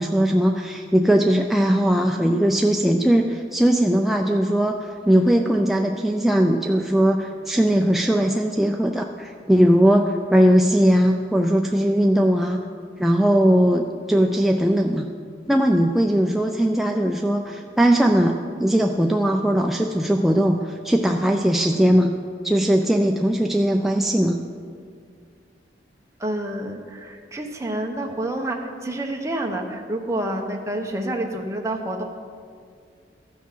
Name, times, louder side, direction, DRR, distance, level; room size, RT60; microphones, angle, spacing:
voice 1, 0.0-12.6 13.0-15.1 15.5-22.1 22.4-24.4, equal, ahead, 2 dB, 0.3 m, -19 dB
voice 2, 26.2-32.0, right 1 dB, 15° right, 2 dB, 0.9 m, -28 dB
14.0 x 6.2 x 5.6 m, 2.1 s
head